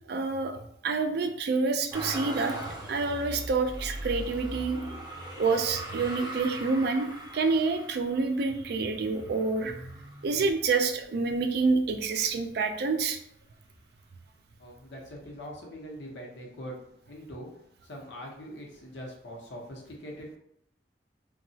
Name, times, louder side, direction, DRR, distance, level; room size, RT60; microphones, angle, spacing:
voice 1, 0.1-0.6 0.8-4.8 5.4-9.7 10.2-13.2, right 4 dB, 60° right, 6 dB, 0.4 m, -28 dB
Motor vehicle (road), 1.9-11.0 11.6-12.5 12.7-13.8 14.9-15.0, right 1 dB, 25° right, 0.6 m, -40 dB
voice 2, 14.6-16.8 17.1-17.5 17.8-20.4, equal, 85° left, -2 dB, 0.8 m, -42 dB
2.8 x 2.3 x 2.7 m, 0.73 s
head